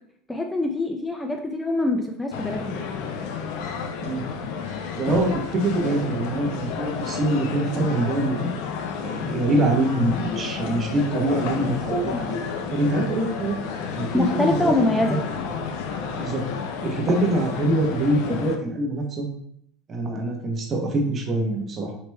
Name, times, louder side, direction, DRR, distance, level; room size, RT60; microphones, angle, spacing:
voice 1, 0.3-2.8 5.1-5.2 14.1-15.2 18.3-18.4, left 2 dB, 10° left, 3 dB, 0.4 m, -24 dB
sound 1, 2.3-18.6, left 6 dB, 70° left, 0.4 m, -31 dB
voice 2, 5.0-8.6 9.0-12.4 12.7-13.6 14.0-14.7 15.1-15.2 16.2-16.4 16.8-19.3 19.9-21.9, right 1 dB, 35° right, 1 dB, 0.9 m, -24 dB
4.5 x 2.9 x 2.2 m, 0.70 s
supercardioid pair, 100°, 0 cm